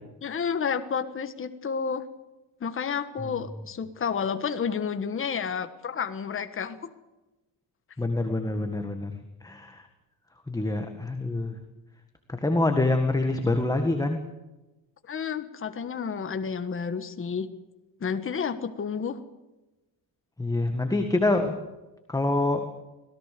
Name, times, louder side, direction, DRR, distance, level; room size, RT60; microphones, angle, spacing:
voice 1, 0.2-2.1 2.6-6.9 15.1-17.5 18.0-19.2, left 6 dB, 25° left, 9 dB, 1.4 m, -30 dB
voice 2, 8.0-9.9 10.5-11.6 12.3-14.2 20.4-21.5 22.1-22.7, left 2 dB, 10° left, 5 dB, 1.8 m, -26 dB
25.5 x 17.5 x 6.9 m, 1.1 s
cardioid pair, 135°, 46 cm